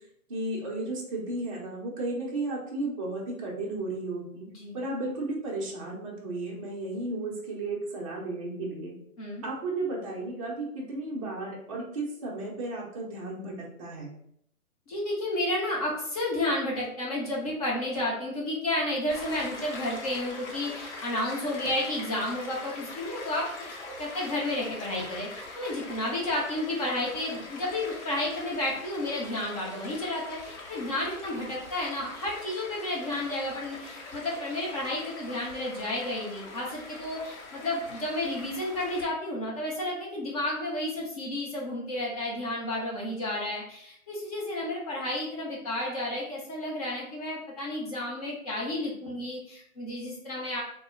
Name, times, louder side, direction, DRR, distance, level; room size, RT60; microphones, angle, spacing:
voice 1, 0.3-4.5 4.7-8.9 9.4-14.1, right 2 dB, 25° right, -4 dB, 0.5 m, -34 dB
voice 2, 14.9-50.6, left 1 dB, 25° left, -4 dB, 0.6 m, -32 dB
Stream, 19.1-39.0, left 2 dB, 55° left, 0.8 m, -43 dB
2.1 x 2.0 x 3.6 m, 0.70 s
hypercardioid pair, 135°, 43 cm